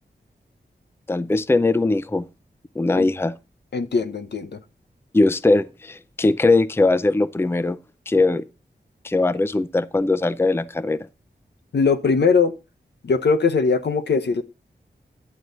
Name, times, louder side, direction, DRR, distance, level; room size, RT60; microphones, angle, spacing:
voice 1, 1.1-2.2 2.8-3.3 5.1-7.8 8.1-8.5 9.0-11.0, left 2 dB, 15° left, 0.5 m, -20 dB
voice 2, 3.7-4.6 11.7-12.5 13.0-14.4, left 5 dB, 70° left, 0.9 m, -20 dB
11.0 x 7.9 x 4.0 m
wide cardioid pair, 85°, 18 cm